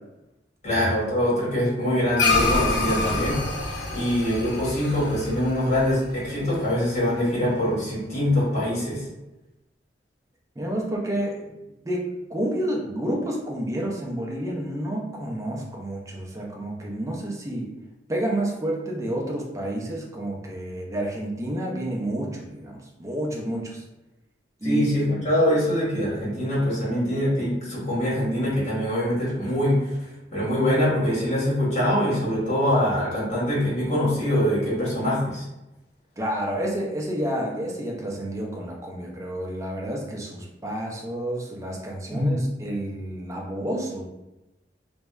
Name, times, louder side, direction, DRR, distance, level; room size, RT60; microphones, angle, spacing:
voice 1, 0.6-9.0 24.6-29.8 30.3-35.4 42.1-42.4, equal, 40° left, -7 dB, 1.0 m, -24 dB
sound 1, 2.2-6.8, left 3 dB, 70° left, 0.7 m, -26 dB
voice 2, 10.6-17.7 18.1-23.8 24.6-25.2 36.2-44.0, right 1 dB, 15° right, -1 dB, 0.4 m, -30 dB
2.7 x 2.1 x 2.2 m, 0.96 s
head